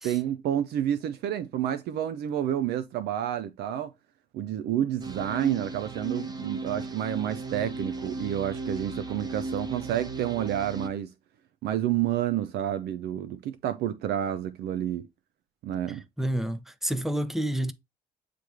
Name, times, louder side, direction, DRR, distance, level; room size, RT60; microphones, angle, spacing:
voice 1, 0.0-3.9 4.3-11.1 11.6-15.1 15.6-16.0, right 11 dB, 75° right, 0.6 m, -29 dB
sound 1, 5.0-10.9, right 3 dB, 25° right, 1.0 m, -36 dB
voice 2, 15.9-17.7, right 1 dB, ahead, 0.7 m, -29 dB
9.1 x 3.3 x 3.5 m
supercardioid pair, 75°, 17 cm